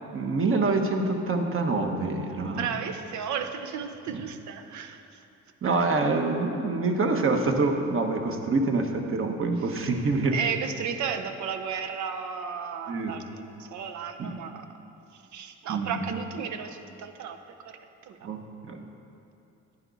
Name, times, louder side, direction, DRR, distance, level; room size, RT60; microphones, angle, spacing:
voice 1, 0.1-2.7 4.1-4.2 5.6-10.4 12.9-13.3 14.2-14.4 15.7-16.1 18.2-18.8, right 3 dB, 45° right, 4 dB, 1.1 m, -26 dB
voice 2, 2.4-5.2 5.6-6.0 9.7-9.9 10.3-14.7 15.1-17.5 18.1-18.2, right 7 dB, 70° right, 7 dB, 0.8 m, -34 dB
11.0 x 9.3 x 4.0 m, 2.8 s
cardioid pair, 90°, 30 cm